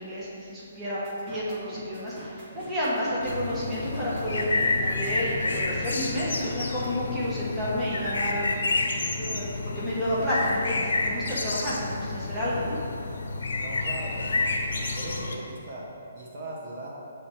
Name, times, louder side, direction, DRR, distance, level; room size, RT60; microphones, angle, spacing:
voice 1, 0.0-8.6 9.1-9.5 9.7-12.8, equal, 5° right, -10 dB, 1.4 m, -30 dB
sound 1, 1.0-6.9, right 1 dB, 25° right, 1.5 m, -46 dB
sound 2, 3.2-15.4, left 3 dB, 85° left, 0.9 m, -29 dB
voice 2, 13.6-14.5 14.9-16.9, right 2 dB, 40° right, -5 dB, 1.2 m, -39 dB
8.6 x 3.5 x 4.5 m, 2.5 s
hypercardioid pair, 160°, 0 cm